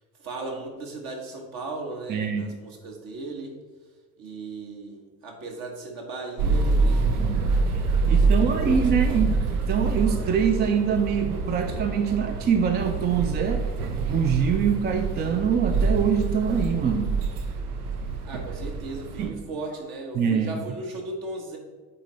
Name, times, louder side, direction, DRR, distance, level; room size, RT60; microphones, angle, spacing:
voice 1, 0.2-3.5 4.2-7.0 8.2-9.3 18.2-21.6, right 2 dB, 50° right, 2 dB, 1.4 m, -36 dB
voice 2, 2.1-2.5 7.2-7.5 8.1-9.4 9.7-13.6 14.1-17.1 19.2-19.4 20.1-20.6, right 7 dB, 25° right, 6 dB, 0.4 m, -24 dB
sound 1, 6.4-19.3, right 3 dB, 80° right, 0.7 m, -26 dB
8.5 x 3.3 x 4.0 m, 1.4 s
figure-of-eight pair, 55°, 45 cm